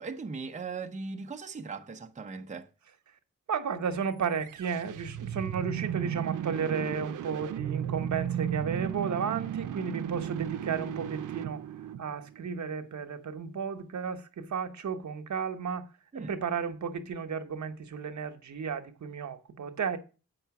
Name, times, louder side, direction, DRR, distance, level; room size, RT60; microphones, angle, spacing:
voice 1, 0.0-2.7 16.1-16.4, right 4 dB, 25° right, 0.7 m, -39 dB
voice 2, 3.5-11.6 12.0-15.9 16.3-20.0, right 6 dB, 65° right, 1.0 m, -33 dB
sound 1, 4.3-12.5, right 10 dB, 90° right, 0.6 m, -35 dB
7.8 x 5.6 x 5.8 m
cardioid pair, 95°, 31 cm